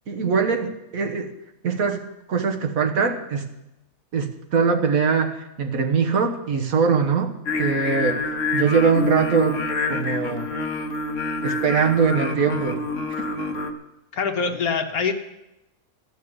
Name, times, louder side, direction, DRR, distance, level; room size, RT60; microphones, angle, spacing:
voice 1, 0.1-1.3 1.6-3.4 4.1-7.3 7.6-8.2 8.5-9.6 9.9-10.5 11.4-12.8, right 5 dB, 75° right, 4 dB, 1.7 m, -22 dB
Singing, 7.5-13.7, left 3 dB, 60° left, 1.4 m, -27 dB
voice 2, 14.1-15.1, left 5 dB, 80° left, 5 dB, 1.7 m, -24 dB
15.0 x 6.6 x 9.7 m, 0.92 s
omnidirectional pair, 1.5 m